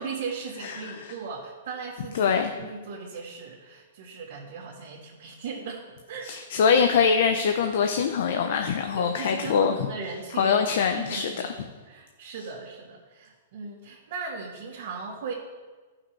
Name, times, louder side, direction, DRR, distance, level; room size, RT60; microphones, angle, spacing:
voice 1, 0.0-6.3 8.9-15.3, right 5 dB, 60° right, -6 dB, 2.2 m, -38 dB
voice 2, 0.6-0.9 2.1-2.5 6.2-9.7 10.4-11.3, left 6 dB, 60° left, 5 dB, 0.7 m, -23 dB
13.5 x 5.9 x 4.7 m, 1.3 s
hypercardioid pair, 155°, 0 cm